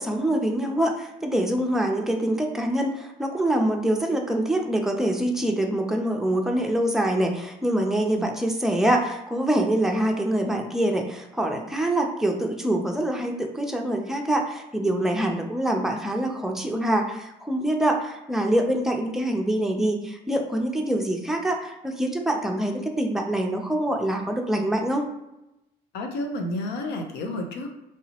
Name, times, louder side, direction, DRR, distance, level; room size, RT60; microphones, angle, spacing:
voice 1, 0.0-25.1, right 1 dB, 5° right, 2 dB, 0.5 m, -25 dB
voice 2, 25.9-27.7, left 1 dB, 85° left, 4 dB, 0.6 m, -31 dB
3.2 x 2.9 x 2.8 m, 0.90 s
cardioid pair, 110°, 17 cm